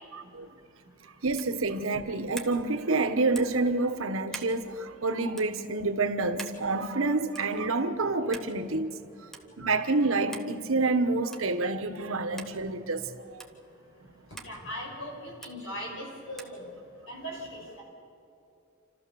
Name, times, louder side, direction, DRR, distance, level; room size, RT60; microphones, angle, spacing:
voice 1, 1.2-9.0 9.6-13.4, right 3 dB, 85° right, 1.2 m, -28 dB
sound 1, 1.3-1.6 2.3-2.6 3.3-3.6 4.3-4.5 5.3-5.5 6.4-6.6 7.3-7.6 8.3-8.5 9.3-9.4 10.3-10.5 11.3-11.5 12.4-12.5 13.4-13.5 14.4-14.5 15.4-15.5 16.4-16.6, right 2 dB, ahead, 1.2 m, -42 dB
voice 2, 14.4-16.7 17.1-17.8, equal, 70° left, 5.8 m, -39 dB
28.5 x 13.5 x 7.0 m
head